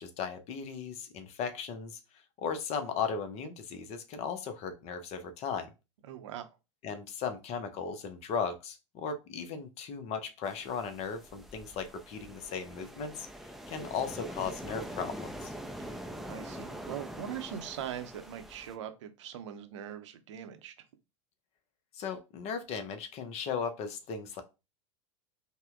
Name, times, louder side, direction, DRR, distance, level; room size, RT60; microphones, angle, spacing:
voice 1, 0.0-2.0 2.4-5.7 6.8-13.3 13.7-15.5 21.9-24.4, left 6 dB, 40° left, 0.7 m, -36 dB
voice 2, 6.1-6.4 15.8-15.9 16.2-20.7, right 9 dB, 60° right, 0.6 m, -41 dB
sound 1, 10.4-18.8, equal, ahead, 0.4 m, -44 dB
5.3 x 2.1 x 2.4 m
figure-of-eight pair, 85°, 17 cm